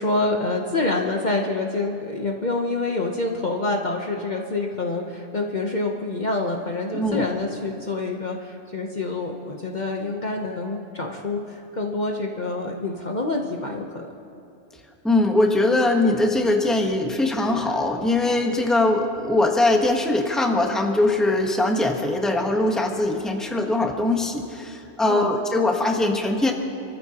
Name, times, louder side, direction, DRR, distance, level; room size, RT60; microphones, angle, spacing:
voice 1, 0.0-14.1 25.0-25.3, left 2 dB, 40° left, 1 dB, 0.9 m, -27 dB
voice 2, 6.9-7.2 15.0-26.5, left 2 dB, ahead, 2 dB, 1.1 m, -21 dB
27.5 x 14.0 x 2.9 m, 2.7 s
omnidirectional pair, 1.2 m